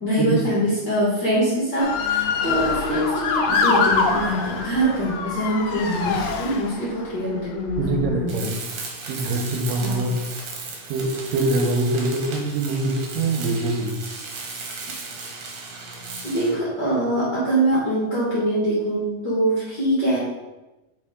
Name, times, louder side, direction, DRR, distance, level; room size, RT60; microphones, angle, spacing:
voice 1, 0.0-8.5 9.8-10.0 16.2-20.2, right 1 dB, 45° left, -7 dB, 1.5 m, -23 dB
Motor vehicle (road) / Siren, 1.8-7.0 7.7-8.1, left 5 dB, 75° left, 2.1 m, -24 dB
voice 2, 7.8-8.6 9.0-10.2 10.9-14.0, right 2 dB, 85° right, 3 dB, 2.5 m, -24 dB
Tools, 8.3-16.7, right 3 dB, 60° right, 2.0 m, -35 dB
5.1 x 4.3 x 4.9 m, 1.0 s
omnidirectional pair, 3.9 m